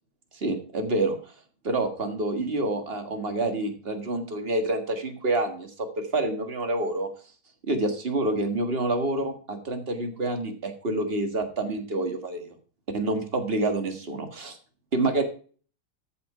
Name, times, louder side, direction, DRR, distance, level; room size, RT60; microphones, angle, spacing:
voice 1, 0.3-1.2 1.6-7.1 7.7-12.5 12.9-14.6 14.9-15.2, right 2 dB, 30° right, 6 dB, 1.7 m, -27 dB
13.5 x 6.0 x 4.9 m, 0.41 s
omnidirectional pair, 2.3 m